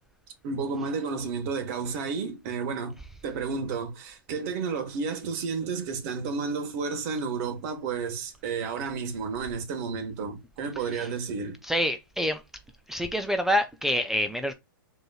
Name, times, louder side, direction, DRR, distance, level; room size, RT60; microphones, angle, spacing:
voice 1, 0.4-3.0 3.2-11.6, right 5 dB, 40° right, 1.4 m, -31 dB
voice 2, 11.6-12.4 12.9-14.5, equal, 5° right, 0.3 m, -27 dB
5.0 x 3.1 x 2.3 m
hypercardioid pair, 140°, 12 cm